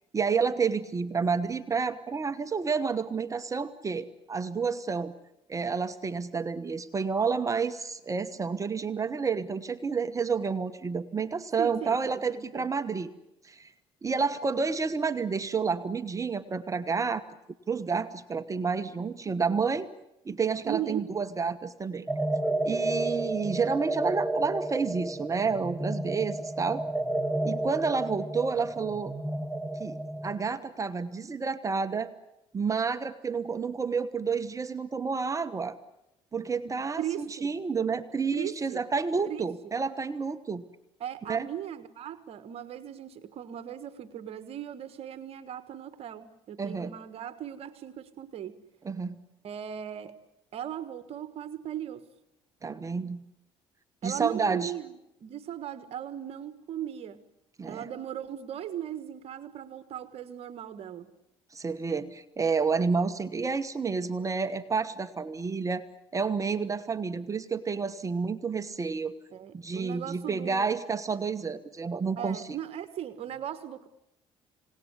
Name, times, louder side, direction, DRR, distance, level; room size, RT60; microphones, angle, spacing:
voice 1, 0.1-5.1 5.5-13.1 13.4-13.7 14.0-17.2 17.7-19.9 20.2-22.1 22.6-26.8 27.4-29.1 29.8-32.1 32.5-35.8 36.3-40.6 41.3-41.5 46.6-46.9 48.8-49.1 52.6-53.2 54.0-54.7 57.6-57.9 61.5-65.8 66.1-69.1 69.5-72.6, right 5 dB, 30° right, 11 dB, 1.2 m, -30 dB
voice 2, 11.6-12.7 20.6-21.1 36.6-37.5 38.3-38.8 39.2-39.4 41.0-48.6 49.4-50.1 50.5-52.0 54.0-54.9 55.2-57.2 57.7-61.1 69.3-70.7 72.2-73.9, right 10 dB, 60° right, 12 dB, 1.5 m, -38 dB
sound 1, 22.1-30.4, right 1 dB, 5° right, 2.0 m, -31 dB
27.5 x 18.5 x 9.7 m, 0.89 s
supercardioid pair, 80°, 11 cm